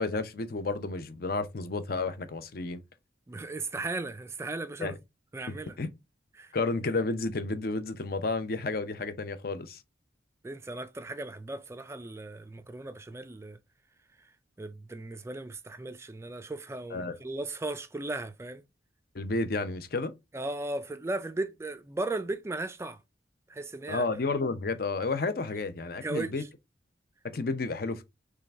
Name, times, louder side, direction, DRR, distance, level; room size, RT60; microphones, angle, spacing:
voice 1, 0.0-2.8 4.8-4.9 5.5-5.9 6.5-9.8 16.9-17.2 19.1-20.1 23.9-26.4 27.2-28.0, left 3 dB, 50° left, 0.6 m, -31 dB
voice 2, 3.3-5.0 5.3-5.8 6.4-6.6 10.4-13.6 14.2-14.3 14.6-18.6 20.3-23.0 23.5-24.1 26.0-26.5, right 2 dB, 15° right, 0.3 m, -36 dB
3.7 x 3.4 x 4.2 m
head